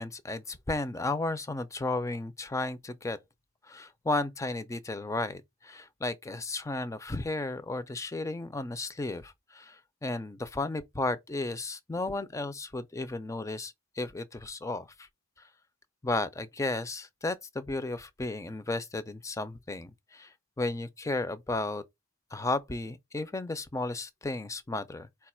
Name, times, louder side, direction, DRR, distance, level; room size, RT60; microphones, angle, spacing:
voice 1, 0.0-3.2 3.7-14.9 16.0-20.3 20.6-21.8 22.3-25.3, left 2 dB, 15° left, 0.4 m, -34 dB
4.6 x 2.3 x 4.3 m
head